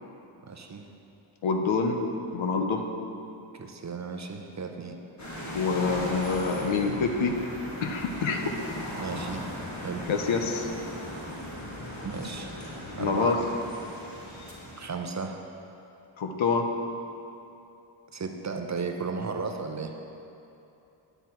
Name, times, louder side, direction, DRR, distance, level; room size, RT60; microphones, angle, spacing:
voice 1, 0.5-0.9 3.5-5.0 9.0-9.5 9.8-10.0 12.0-12.5 13.0-13.5 14.8-15.4 18.1-19.9, right 4 dB, 35° right, 4 dB, 0.6 m, -34 dB
voice 2, 1.4-2.0 2.3-2.8 5.5-7.4 7.8-8.5 10.1-10.7 13.0-13.4 16.2-16.7, left 4 dB, 70° left, 4 dB, 1.0 m, -26 dB
sound 1, 5.2-14.9, left 1 dB, 35° left, 1.6 m, -38 dB
9.3 x 8.0 x 4.5 m, 2.9 s
wide cardioid pair, 145°, 49 cm